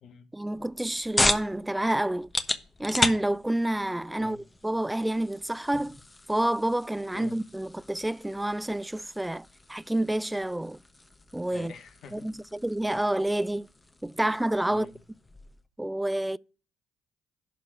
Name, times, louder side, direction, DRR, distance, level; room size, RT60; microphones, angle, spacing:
voice 1, 0.3-2.3 2.8-6.0 6.3-10.8 11.3-11.7 12.1-13.7 14.0-14.9 15.8-16.4, right 1 dB, 10° right, 0.3 m, -29 dB
sound 1, 0.5-15.7, left 2 dB, 20° left, 1.1 m, -35 dB
voice 2, 11.5-12.3 14.7-15.0, left 6 dB, 65° left, 1.2 m, -45 dB
11.5 x 3.8 x 7.2 m
hypercardioid pair, 50°, 0 cm